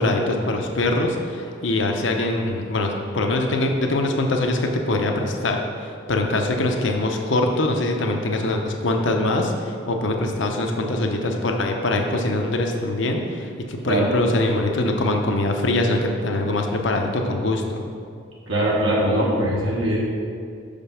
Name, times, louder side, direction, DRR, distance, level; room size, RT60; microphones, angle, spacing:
voice 1, 0.0-17.8, left 2 dB, 65° left, 3 dB, 0.7 m, -23 dB
voice 2, 18.5-20.0, right 1 dB, 80° right, -5 dB, 1.3 m, -21 dB
5.8 x 5.2 x 5.6 m, 2.3 s
head